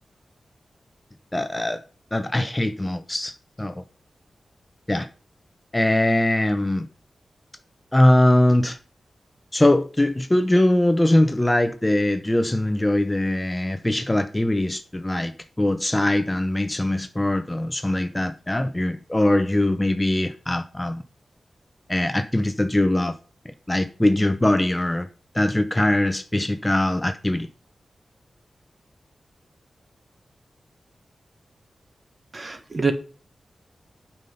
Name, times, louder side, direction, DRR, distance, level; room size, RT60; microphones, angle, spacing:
voice 1, 1.3-1.8 2.1-3.8 4.9-5.1 5.7-6.9 7.9-8.8 9.5-15.3 15.6-21.0 21.9-23.1 23.4-25.1 25.3-27.5, left 1 dB, 15° left, 0.7 m, -21 dB
voice 2, 32.3-32.9, right 4 dB, 35° right, 1.5 m, -25 dB
8.9 x 5.7 x 5.5 m
wide cardioid pair, 110°, 0 cm